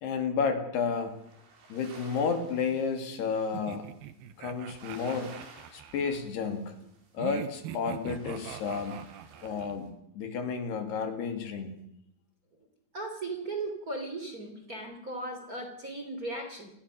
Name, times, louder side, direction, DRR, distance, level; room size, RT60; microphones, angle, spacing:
voice 1, 0.0-1.2 1.7-3.9 4.4-5.4 5.7-6.7 7.1-9.0 9.4-11.8, left 5 dB, 70° left, 6 dB, 4.5 m, -31 dB
sound 1, 0.7-9.9, right 3 dB, 90° right, 7.0 m, -55 dB
sound 2, 3.5-6.2 7.2-9.8, right 11 dB, 70° right, 2.9 m, -42 dB
voice 2, 12.9-16.7, right 2 dB, 20° right, 5 dB, 3.1 m, -37 dB
29.5 x 20.0 x 6.5 m, 0.78 s
omnidirectional pair, 4.9 m